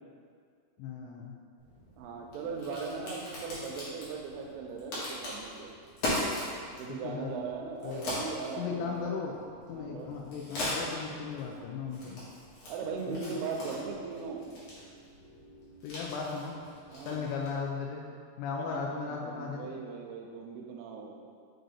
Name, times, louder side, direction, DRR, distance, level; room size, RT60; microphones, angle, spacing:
voice 1, 0.8-1.4 7.0-7.3 7.8-8.2 8.6-12.3 13.1-13.3 15.8-16.5 17.1-18.1 18.4-19.7, left 5 dB, 90° left, -1 dB, 3.1 m, -37 dB
Crack, 1.6-17.7, left 1 dB, 60° left, 2.1 m, -40 dB
voice 2, 2.0-5.7 6.7-9.2 9.7-10.1 12.7-14.5 16.9-17.2 18.5-21.2, right 5 dB, 90° right, 0 dB, 3.1 m, -39 dB
6.4 x 6.0 x 2.6 m, 2.1 s
omnidirectional pair, 5.4 m